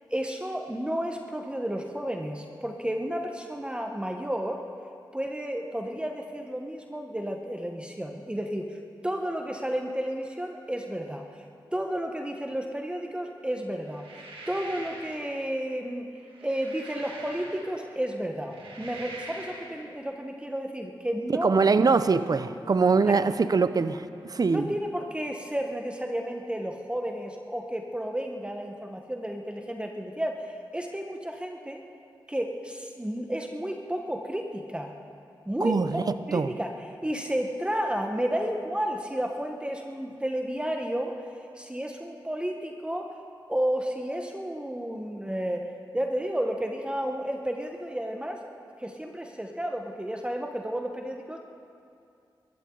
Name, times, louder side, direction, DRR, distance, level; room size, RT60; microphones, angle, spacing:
voice 1, 0.1-4.6 5.1-8.8 9.0-11.3 11.7-16.1 16.4-21.5 23.1-23.3 24.4-31.8 32.3-34.9 35.4-36.0 36.3-41.1 41.6-43.1 43.5-45.7 45.9-48.4 48.8-51.4, equal, 10° right, 1.2 m, -32 dB
sound 1, 13.9-15.3 16.2-17.9 18.4-19.8, right 2 dB, 90° right, 2.2 m, -43 dB
voice 2, 21.4-24.7 35.6-36.0 36.3-36.5, right 4 dB, 45° right, 0.6 m, -23 dB
22.0 x 14.5 x 3.9 m
cardioid pair, 50°, 9 cm